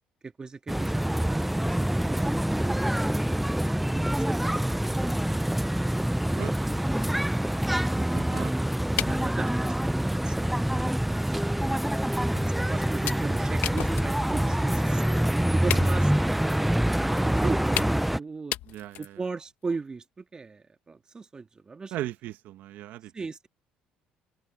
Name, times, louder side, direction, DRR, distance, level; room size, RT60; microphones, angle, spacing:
voice 1, 0.2-2.4 2.6-3.6 3.9-5.1 8.4-8.7 9.0-11.4 12.6-15.0 15.5-16.1 17.1-18.5 19.0-21.9 23.1-23.5, right 4 dB, 25° right, 1.7 m, -38 dB
sound 1, 0.7-18.2, right 1 dB, 5° right, 0.4 m, -26 dB
sound 2, 6.3-8.2 9.0-9.6 10.3-10.4 10.8-11.0 11.6-11.7 12.4-12.6 13.1-14.4 14.7-14.8 15.1-15.3 15.7-16.2 17.2-17.3 17.8-18.2 18.5-19.3, left 14 dB, 80° left, 1.3 m, -35 dB
voice 2, 7.9-8.5 15.7-15.9 18.7-19.2 21.9-23.3, right 14 dB, 75° right, 1.2 m, -38 dB
cardioid pair, 95°, 3 cm